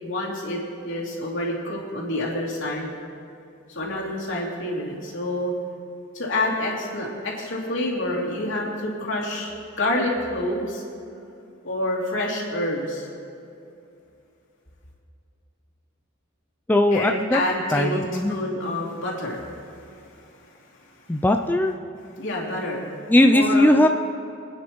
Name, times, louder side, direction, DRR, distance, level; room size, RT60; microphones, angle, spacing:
voice 1, 0.0-2.9 3.7-5.5 6.1-9.5 9.8-10.8 11.6-13.1 16.9-18.0 18.3-19.5 22.2-23.0 23.3-23.7, left 1 dB, 65° left, -4 dB, 2.9 m, -27 dB
voice 2, 16.7-17.4 17.7-18.4 21.1-21.7 23.1-23.9, left 1 dB, 10° left, 4 dB, 0.3 m, -18 dB
25.5 x 9.6 x 3.1 m, 2.7 s
head